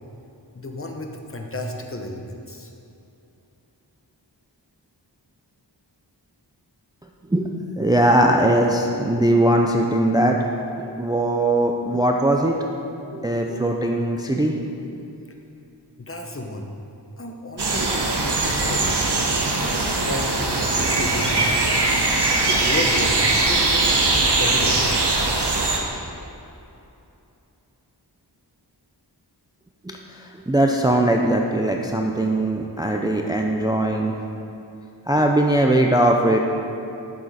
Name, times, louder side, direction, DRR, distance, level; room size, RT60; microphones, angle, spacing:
voice 1, 0.5-2.7 16.0-16.7 17.2-19.1 19.5-21.3 22.5-24.8, left 1 dB, 30° left, 2 dB, 0.8 m, -32 dB
voice 2, 7.8-10.4 11.0-12.6 13.1-14.6 29.9-30.0 30.5-34.1 35.1-36.4, right 1 dB, 10° right, 1 dB, 0.4 m, -20 dB
sound 1, 17.6-25.8, right 2 dB, 65° right, 0.9 m, -21 dB
7.5 x 7.2 x 4.1 m, 2.8 s
wide cardioid pair, 60°, 43 cm